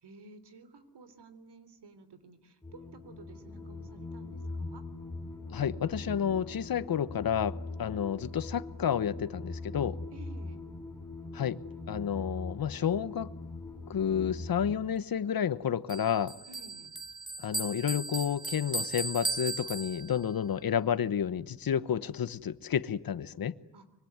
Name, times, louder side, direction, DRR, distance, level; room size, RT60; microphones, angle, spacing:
voice 1, 0.0-4.9 10.1-10.6 16.5-16.9 23.7-23.9, right 3 dB, 70° right, 3.4 m, -53 dB
sound 1, 2.6-14.8, left 2 dB, 5° left, 3.6 m, -41 dB
voice 2, 5.5-10.0 11.3-11.6 11.9-13.3 13.9-16.3 17.4-23.6, left 8 dB, 55° left, 1.0 m, -30 dB
Bell, 15.9-20.4, right 2 dB, 10° right, 2.1 m, -37 dB
25.0 x 24.0 x 9.5 m
wide cardioid pair, 135°, 42 cm